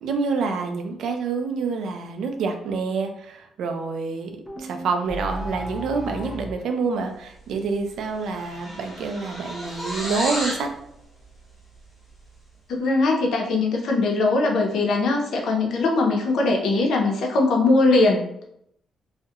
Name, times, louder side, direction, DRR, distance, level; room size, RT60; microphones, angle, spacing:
voice 1, 0.0-4.3 4.6-10.7, right 4 dB, 75° right, 5 dB, 0.4 m, -27 dB
sound 1, 4.5-6.6, equal, 10° right, 0.5 m, -34 dB
sound 2, 7.5-7.7 8.0-10.7, equal, 10° left, 0.9 m, -32 dB
voice 2, 12.7-18.4, left 3 dB, 75° left, 1 dB, 0.5 m, -21 dB
2.3 x 2.1 x 2.8 m, 0.74 s
cardioid pair, 125°, 0 cm